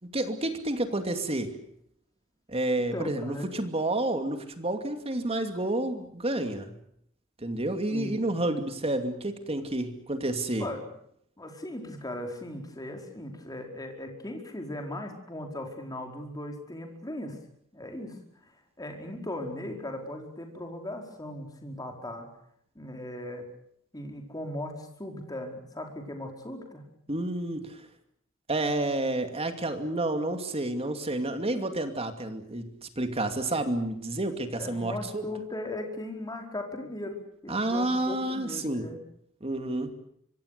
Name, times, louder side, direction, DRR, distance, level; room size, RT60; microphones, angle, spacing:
voice 1, 0.0-1.5 2.5-6.7 7.4-10.7 27.1-27.8 28.5-35.3 37.5-38.8 39.4-39.9, right 1 dB, 30° right, 7 dB, 2.6 m, -30 dB
voice 2, 2.9-3.5 7.9-8.3 10.6-10.9 11.4-17.4 17.7-18.5 18.8-22.3 22.7-23.4 23.9-26.8 34.6-39.0, left 1 dB, 20° left, 3 dB, 4.8 m, -38 dB
25.5 x 24.0 x 6.8 m, 0.70 s
head